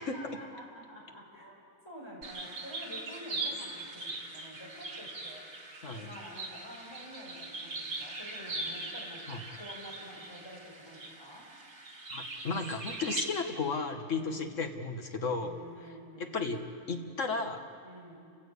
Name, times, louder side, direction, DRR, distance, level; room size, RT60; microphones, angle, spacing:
voice 1, 0.0-11.5 14.1-14.5 15.4-16.4 17.8-18.2, equal, 15° left, -4 dB, 6.5 m, -49 dB
sound 1, 2.2-13.2, right 2 dB, 80° right, 2.8 m, -41 dB
voice 2, 12.1-15.6 16.2-16.6 16.9-17.6, left 4 dB, 55° left, 4 dB, 1.9 m, -34 dB
30.0 x 15.0 x 8.4 m, 2.3 s
omnidirectional pair, 1.6 m